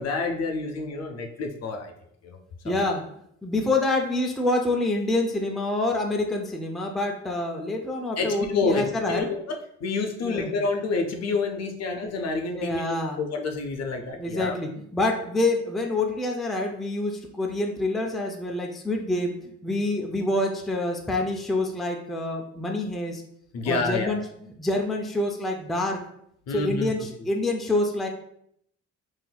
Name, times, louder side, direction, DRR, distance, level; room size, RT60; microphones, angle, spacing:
voice 1, 0.0-1.9 2.2-2.4 2.6-2.9 8.2-14.6 23.5-24.1 26.5-26.9, left 3 dB, 60° left, 4 dB, 0.6 m, -28 dB
voice 2, 2.6-3.1 3.4-9.3 10.2-10.5 12.5-13.2 14.2-23.2 23.6-26.0 26.5-28.1, left 2 dB, ahead, 1 dB, 0.3 m, -27 dB
3.9 x 2.5 x 2.2 m, 0.72 s
cardioid pair, 90°, 30 cm